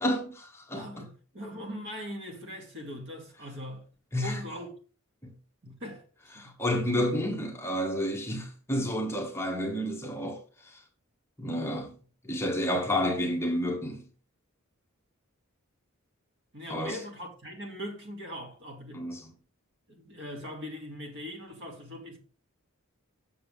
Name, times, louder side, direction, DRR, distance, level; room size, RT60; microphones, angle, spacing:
voice 1, 0.0-1.0 4.1-4.4 5.2-5.3 6.4-10.8 11.4-12.0 12.2-14.0 16.7-17.0 18.9-19.3, equal, 10° left, 1.1 m, -30 dB
voice 2, 0.7-3.9 4.2-4.7 5.6-6.0 6.3-6.6 16.5-19.0 19.9-22.2, equal, 55° right, 2.3 m, -41 dB
7.6 x 6.6 x 3.6 m
head